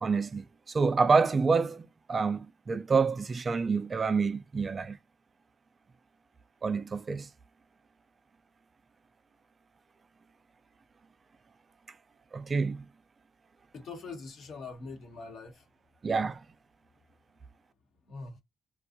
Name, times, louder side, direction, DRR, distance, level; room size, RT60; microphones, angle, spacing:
voice 1, 0.0-5.0 6.6-7.3 12.3-12.9 16.0-16.5, right 4 dB, 35° right, 0.3 m, -28 dB
voice 2, 13.7-15.6 18.1-18.4, left 4 dB, 65° left, 1.0 m, -43 dB
2.5 x 2.2 x 2.5 m
cardioid pair, 90°, 0 cm